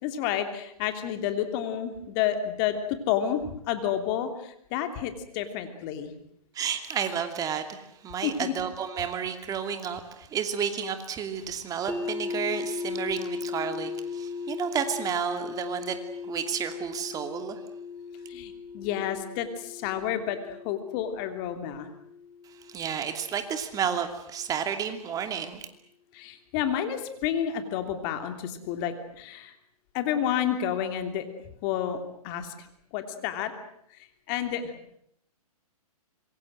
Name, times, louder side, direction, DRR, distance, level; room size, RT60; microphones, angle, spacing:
voice 1, 0.0-3.4 3.7-6.1 8.2-8.5 18.3-21.9 26.1-29.5 29.9-31.2 31.6-32.7 32.9-33.5 34.3-34.7, left 10 dB, 35° left, 8 dB, 3.2 m, -30 dB
voice 2, 6.5-7.8 8.0-15.9 16.2-17.6 22.7-25.6, right 8 dB, 20° right, 8 dB, 2.6 m, -31 dB
sound 1, 11.9-23.8, left 5 dB, 5° left, 2.7 m, -38 dB
26.5 x 22.5 x 7.8 m, 0.72 s
hypercardioid pair, 135°, 20 cm